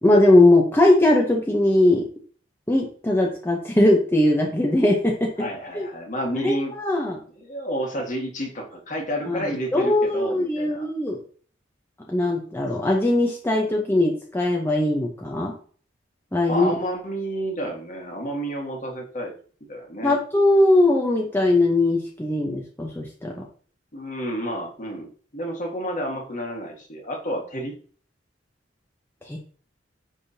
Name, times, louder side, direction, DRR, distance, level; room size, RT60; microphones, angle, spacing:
voice 1, 0.0-2.1 2.7-5.3 5.7-5.9 6.4-7.2 9.3-11.2 12.1-15.5 16.3-16.7 20.0-23.3 29.2-29.4, left 1 dB, 10° left, -1 dB, 0.8 m, -20 dB
voice 2, 5.4-6.7 7.4-10.9 16.5-19.3 19.7-20.2 23.9-27.7, equal, 45° left, 1 dB, 1.6 m, -30 dB
10.0 x 3.6 x 2.8 m, 0.44 s
head